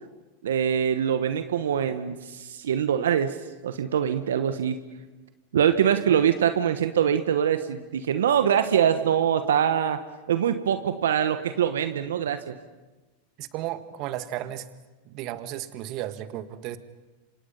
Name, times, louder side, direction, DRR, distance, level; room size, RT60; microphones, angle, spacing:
voice 1, 0.4-3.4 3.6-4.8 5.5-10.0 10.3-12.5, right 9 dB, 85° right, 10 dB, 1.2 m, -23 dB
voice 2, 13.4-14.7 15.1-16.8, right 13 dB, 50° right, 11 dB, 1.7 m, -34 dB
28.5 x 26.0 x 5.6 m, 1.2 s
hypercardioid pair, 110°, 0 cm